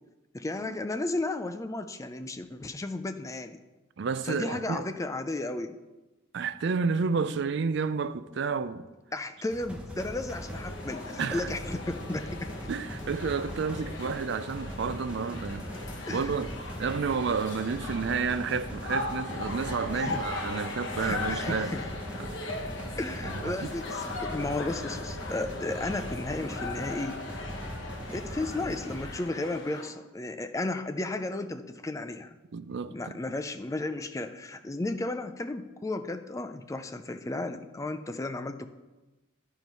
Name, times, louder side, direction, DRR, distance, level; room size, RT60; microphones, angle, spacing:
voice 1, 0.3-3.6 4.2-5.7 9.1-12.5 16.1-16.4 19.9-20.2 21.0-21.9 23.0-27.2 28.1-32.4 32.9-38.7, left 2 dB, 15° left, 0.4 m, -34 dB
voice 2, 4.0-4.9 6.3-8.9 11.2-11.5 12.7-16.5 16.8-21.7 22.2-22.3 23.2-23.6 32.5-32.9, right 5 dB, 60° right, 0.4 m, -31 dB
sound 1, 9.5-29.1, equal, 5° right, 0.9 m, -40 dB
sound 2, 10.4-29.9, left 2 dB, 65° left, 1.0 m, -39 dB
10.5 x 4.6 x 5.3 m
head